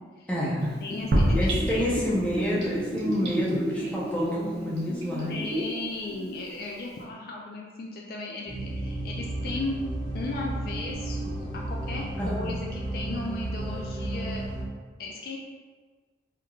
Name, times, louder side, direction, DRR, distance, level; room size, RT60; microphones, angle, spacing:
voice 1, 0.3-0.7 1.4-5.4 12.2-12.4, equal, 5° left, -8 dB, 0.7 m, -28 dB
Gurgling / Bathtub (filling or washing), 0.6-5.8 6.1-6.2, equal, 80° right, 0.9 m, -31 dB
voice 2, 0.8-2.1 5.3-9.8 10.1-14.4 15.0-15.4, left 3 dB, 55° left, -1 dB, 0.3 m, -36 dB
sound 1, 1.1-3.5, right 1 dB, 65° right, 0.5 m, -26 dB
sound 2, 8.5-14.6, right 1 dB, 25° right, 1.1 m, -33 dB
3.4 x 3.0 x 2.3 m, 1.4 s
head